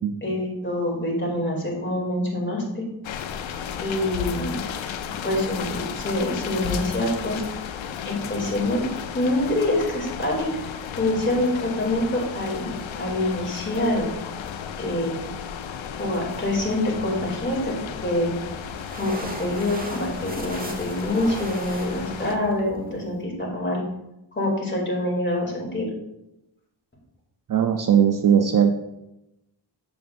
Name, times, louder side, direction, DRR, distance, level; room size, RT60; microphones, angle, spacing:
voice 1, 0.2-2.8 3.8-4.6 5.2-7.4 8.0-8.8 9.1-14.1 14.8-15.2 16.0-18.3 18.9-23.8 24.3-25.9, left 1 dB, 25° left, -2 dB, 2.7 m, -26 dB
sound 1, 3.0-22.4, left 8 dB, 90° left, 0.6 m, -34 dB
sound 2, 18.2-23.2, right 1 dB, 20° right, 1.1 m, -39 dB
voice 2, 27.5-28.7, right 8 dB, 45° right, 6 dB, 0.6 m, -19 dB
7.5 x 6.8 x 2.6 m, 0.89 s
cardioid pair, 75°, 45 cm